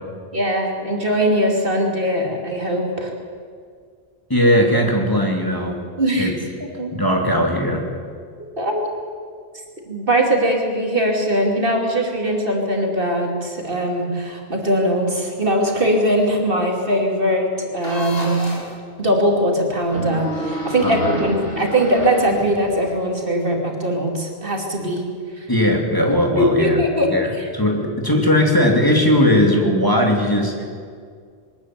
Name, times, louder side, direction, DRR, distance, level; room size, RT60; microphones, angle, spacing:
voice 1, 0.3-3.1 6.0-6.3 6.6-7.0 8.4-8.9 9.8-18.5 19.0-25.0 25.4-25.5 26.4-27.1 27.4-27.5, equal, 55° right, 1 dB, 3.1 m, -21 dB
voice 2, 4.3-5.8 6.1-6.3 6.9-7.8 20.8-21.1 25.5-26.8 27.1-30.7, left 1 dB, 20° left, 1 dB, 2.6 m, -18 dB
sound 1, 17.8-18.7 19.8-22.9, equal, 65° left, 4.6 m, -29 dB
22.0 x 13.5 x 9.5 m, 2.1 s
omnidirectional pair, 1.1 m